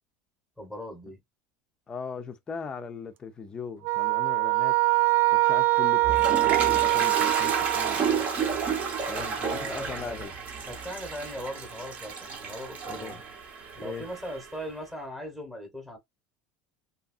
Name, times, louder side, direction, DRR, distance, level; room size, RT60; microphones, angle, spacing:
voice 1, 0.6-1.2 9.1-10.2 10.7-13.2 13.7-16.0, equal, ahead, 1.0 m, -39 dB
voice 2, 1.9-4.8 5.3-8.2 9.1-10.3 12.9-13.2 13.8-14.1, left 5 dB, 20° left, 0.6 m, -39 dB
sound 1, 3.8-8.3, right 20 dB, 50° right, 0.3 m, -23 dB
Toilet flush, 5.8-14.6, right 6 dB, 30° right, 0.8 m, -31 dB
2.8 x 2.6 x 2.5 m
cardioid pair, 155°, 5 cm